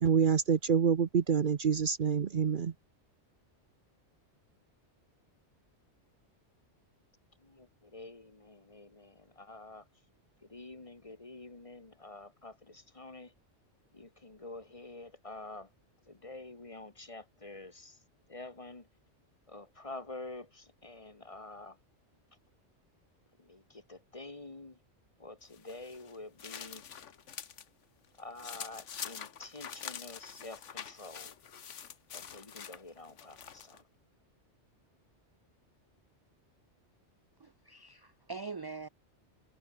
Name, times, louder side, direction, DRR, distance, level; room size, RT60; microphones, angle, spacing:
voice 1, 0.0-2.7, right 6 dB, 50° right, 0.9 m, -27 dB
voice 2, 7.4-9.8 10.5-13.3 13.9-15.7 16.1-18.0 18.3-18.8 19.5-21.8 23.4-24.8 25.2-26.8 28.2-31.3 32.1-33.8, left 2 dB, 30° left, 1.5 m, -48 dB
sound 1, 25.5-27.7 28.0-33.8, left 8 dB, 90° left, 1.4 m, -45 dB
voice 3, 37.4-38.9, right 4 dB, 25° right, 0.5 m, -43 dB
omnidirectional pair, 1.2 m